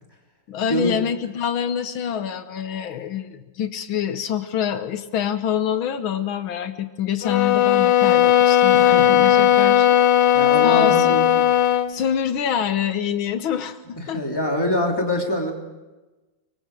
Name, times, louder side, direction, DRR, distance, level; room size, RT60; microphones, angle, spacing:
voice 1, 0.5-10.0 10.2-10.4 10.6-11.2 11.9-14.2, left 9 dB, 85° left, 10 dB, 1.8 m, -26 dB
sound 1, 7.2-12.0, left 10 dB, 65° left, 1.5 m, -16 dB
voice 2, 8.7-9.5 10.3-11.4 14.0-15.5, equal, 10° left, 1 dB, 3.3 m, -25 dB
25.0 x 23.5 x 5.0 m, 1.1 s
omnidirectional pair, 2.2 m